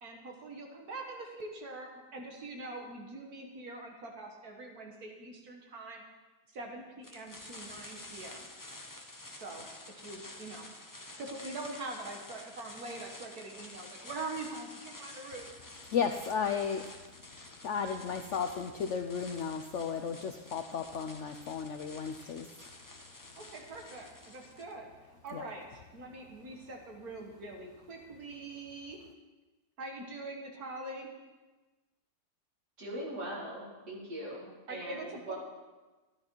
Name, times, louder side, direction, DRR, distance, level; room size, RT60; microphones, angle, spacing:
voice 1, 0.0-6.0 6.5-8.5 9.3-15.5 16.7-16.9 23.4-29.0 29.8-31.1 34.5-35.3, right 2 dB, 65° right, 2 dB, 1.8 m, -44 dB
sound 1, 7.0-24.7, left 2 dB, 15° left, 0.8 m, -50 dB
voice 2, 15.9-16.9 17.6-22.7 25.3-25.4, left 6 dB, 65° left, 6 dB, 0.8 m, -34 dB
voice 3, 32.8-35.3, right 1 dB, 90° right, -8 dB, 4.9 m, -41 dB
13.0 x 11.5 x 4.5 m, 1.2 s
omnidirectional pair, 1.7 m